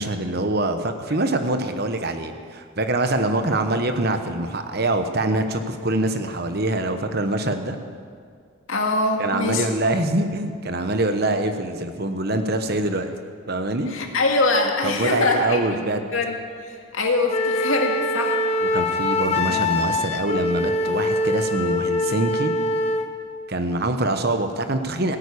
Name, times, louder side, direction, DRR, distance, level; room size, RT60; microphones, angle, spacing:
voice 1, 0.0-7.8 9.2-13.1 13.5-13.9 14.8-16.1 18.7-22.5 23.5-25.2, right 2 dB, 50° right, 7 dB, 1.0 m, -24 dB
voice 2, 8.7-9.8 13.9-15.9 16.1-16.4 16.6-18.8 19.5-19.8, left 2 dB, 70° left, 2 dB, 2.1 m, -24 dB
Wind instrument woodwind instrument, 17.3-23.1, left 2 dB, 30° left, 0.9 m, -23 dB
16.5 x 9.2 x 8.4 m, 2.1 s
head